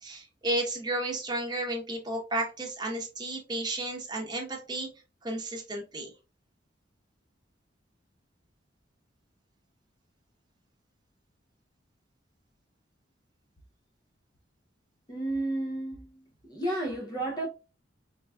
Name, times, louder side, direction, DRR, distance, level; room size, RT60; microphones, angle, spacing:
voice 1, 0.0-4.9 5.2-6.1 16.7-16.8, right 1 dB, 20° right, 0.9 m, -33 dB
voice 2, 15.1-16.0 16.5-17.5, right 1 dB, 20° left, 0.6 m, -31 dB
3.8 x 3.4 x 2.2 m
head